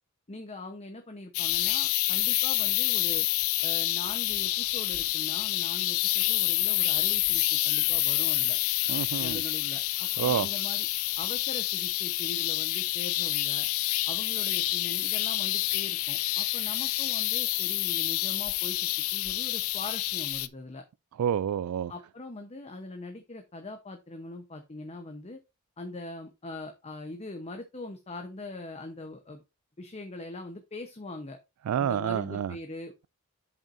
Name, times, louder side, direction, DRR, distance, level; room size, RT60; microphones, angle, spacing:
voice 1, 0.3-3.2 3.6-8.6 9.2-10.9 11.2-13.7 14.1-20.8 21.9-25.4 25.8-29.4 29.8-31.4 31.8-33.1, left 2 dB, 30° left, 0.8 m, -42 dB
sound 1, 1.3-20.5, left 17 dB, 70° left, 0.5 m, -28 dB
voice 2, 8.9-9.4 10.2-10.5 21.2-21.9 31.7-32.5, right 9 dB, 80° right, 0.3 m, -28 dB
8.2 x 7.1 x 2.6 m
head